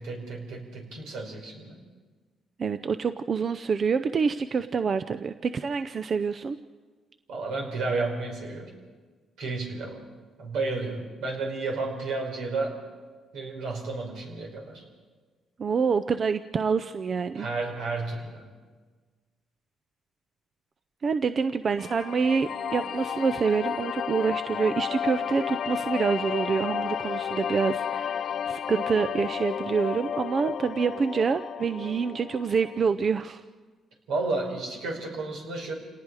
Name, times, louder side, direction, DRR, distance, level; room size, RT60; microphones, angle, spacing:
voice 1, 0.0-1.8 7.3-8.7 9.4-10.0 10.4-12.8 13.3-14.8 17.4-18.4 34.1-35.7, right 3 dB, 85° right, 1 dB, 5.3 m, -32 dB
voice 2, 2.6-6.6 15.6-17.5 21.0-33.4, right 5 dB, 45° right, 11 dB, 0.6 m, -27 dB
sound 1, 21.8-32.8, left 8 dB, 60° left, 0.5 m, -32 dB
28.0 x 19.0 x 4.9 m, 1.4 s
cardioid pair, 90°, 0 cm